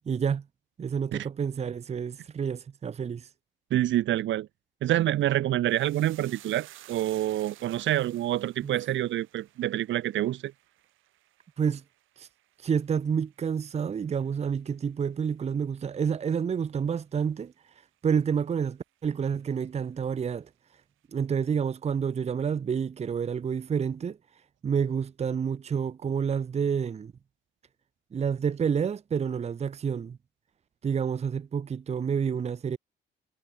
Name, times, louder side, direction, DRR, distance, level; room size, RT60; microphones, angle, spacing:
voice 1, 0.1-0.4 0.8-3.3 8.6-8.8 11.6-11.8 12.2-12.3 12.6-17.5 18.0-20.5 21.1-24.2 24.6-27.1 28.1-30.2 30.8-32.8, right 7 dB, 35° right, 0.6 m, -29 dB
voice 2, 3.7-4.5 4.8-10.5, right 13 dB, 70° right, 0.8 m, -27 dB
sound 1, 5.7-14.3 14.6-15.3 15.5-15.8, right 15 dB, 90° right, 4.9 m, -54 dB
cardioid pair, 90°, 20 cm